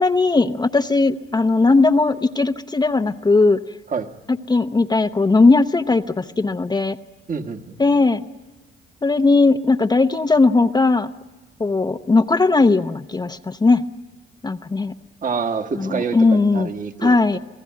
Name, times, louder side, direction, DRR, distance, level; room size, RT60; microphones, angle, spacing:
voice 1, 0.0-3.6 4.5-7.0 7.8-8.2 9.0-11.1 11.6-13.8 14.4-14.9 15.8-16.7 17.0-17.4, left 3 dB, 20° left, 8 dB, 0.7 m, -18 dB
voice 2, 7.3-7.8 15.2-17.4, right 5 dB, 40° right, 7 dB, 1.6 m, -27 dB
27.0 x 17.5 x 9.4 m, 1.2 s
cardioid pair, 90°, 20 cm